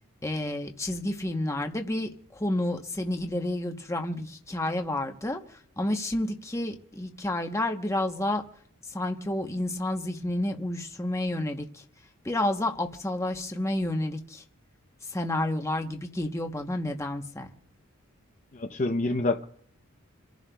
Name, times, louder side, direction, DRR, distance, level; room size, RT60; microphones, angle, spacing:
voice 1, 0.2-5.4 5.8-8.5 8.9-11.8 12.2-14.4 15.1-17.5, left 1 dB, 15° left, 0.9 m, -30 dB
voice 2, 18.5-19.5, left 2 dB, 35° left, 0.6 m, -27 dB
29.0 x 11.0 x 2.3 m
head